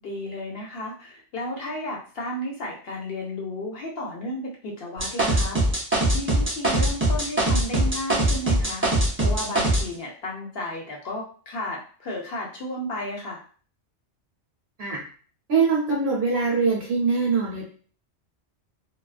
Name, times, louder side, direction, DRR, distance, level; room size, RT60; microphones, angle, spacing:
voice 1, 0.0-5.8 6.1-8.8 9.2-13.4, left 1 dB, 60° left, -2 dB, 0.8 m, -33 dB
sound 1, 5.0-9.8, right 1 dB, 15° right, 0.4 m, -21 dB
voice 2, 15.5-17.7, right 4 dB, 60° right, -4 dB, 0.9 m, -23 dB
2.3 x 2.2 x 2.3 m, 0.42 s
omnidirectional pair, 1.2 m